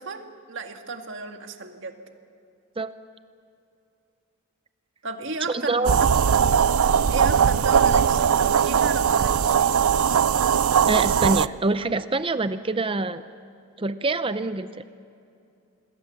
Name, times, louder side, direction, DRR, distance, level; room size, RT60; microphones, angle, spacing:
voice 1, 0.0-2.0 5.0-6.0 7.1-9.7, right 4 dB, 60° right, 5 dB, 1.9 m, -33 dB
voice 2, 5.5-5.9 10.9-13.2 13.8-14.8, right 3 dB, 25° right, 12 dB, 0.5 m, -25 dB
sound 1, 5.8-11.5, right 7 dB, 80° right, 0.5 m, -20 dB
27.0 x 21.0 x 7.3 m, 2.5 s
head